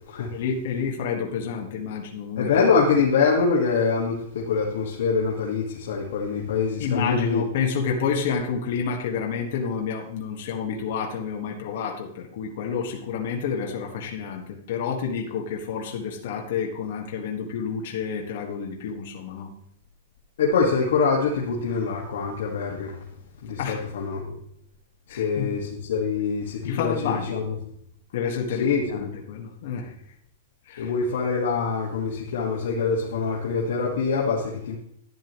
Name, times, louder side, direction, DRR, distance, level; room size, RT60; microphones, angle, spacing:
voice 1, 0.3-2.5 6.8-19.5 23.6-23.8 25.1-25.5 26.6-27.4 28.1-29.9 30.7-30.9, left 6 dB, 55° left, 0 dB, 1.6 m, -29 dB
voice 2, 2.3-7.4 20.4-22.9 23.4-24.4 25.1-27.5 28.6-29.1 30.8-34.7, left 5 dB, 75° left, -3 dB, 1.8 m, -24 dB
11.5 x 10.5 x 3.1 m, 0.72 s
supercardioid pair, 165°, 0 cm